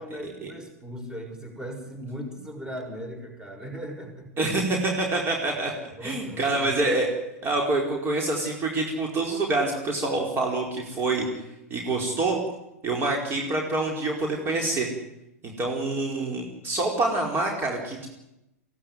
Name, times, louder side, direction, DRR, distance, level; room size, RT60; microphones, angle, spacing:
voice 1, 0.0-4.3 6.0-6.8, equal, 10° right, 4 dB, 6.0 m, -38 dB
voice 2, 4.4-5.7 6.0-7.1 7.4-11.4 11.7-12.4 12.8-14.9 15.4-18.1, right 2 dB, 25° right, 1 dB, 4.9 m, -26 dB
22.5 x 17.0 x 9.6 m, 0.90 s
hypercardioid pair, 105°, 9 cm